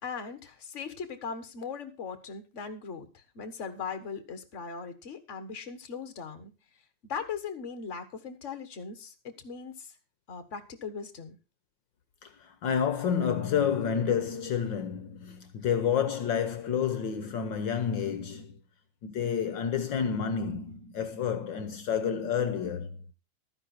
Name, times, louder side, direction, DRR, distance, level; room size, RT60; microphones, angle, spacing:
voice 1, 0.0-6.5 7.1-9.9 10.3-11.3, left 5 dB, 35° left, 1.6 m, -39 dB
voice 2, 12.2-18.6 19.0-23.0, left 7 dB, 65° left, 1.5 m, -29 dB
13.0 x 9.9 x 4.4 m
omnidirectional pair, 2.4 m